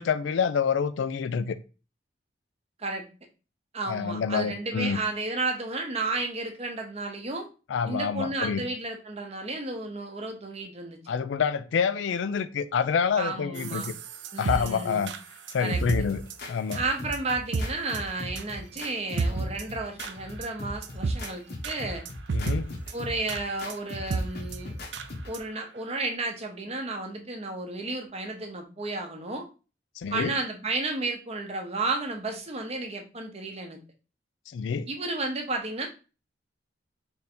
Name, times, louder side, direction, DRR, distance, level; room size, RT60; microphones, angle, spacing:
voice 1, 0.0-1.6 3.9-5.0 7.7-8.6 11.1-13.9 14.4-15.1 15.5-16.2 16.5-16.8 22.3-22.8 30.0-30.3 34.5-34.9, left 6 dB, 80° left, 0.3 m, -27 dB
voice 2, 3.7-7.5 7.9-11.0 13.2-13.9 14.3-15.1 15.6-15.8 16.7-22.0 22.9-24.7 25.3-29.5 30.1-33.8 34.9-35.9, right 3 dB, 35° right, 0.8 m, -32 dB
sound 1, 13.6-16.0 16.3-16.4 16.7-16.8 17.1-17.2 17.5-17.6 17.9-18.0 18.4-18.5 18.8-18.9 19.2-19.6 20.0-20.1 20.4-20.5 20.8-21.3 21.6-21.8 22.1-22.6 22.9-23.0 23.3-23.4 23.7-23.8 24.1-24.2 24.5-24.6 24.9-25.1 25.3-25.4 25.8-25.9, right 4 dB, 65° right, 0.4 m, -30 dB
sound 2, 15.8-25.4, left 1 dB, 55° left, 0.9 m, -40 dB
3.5 x 2.5 x 4.3 m
head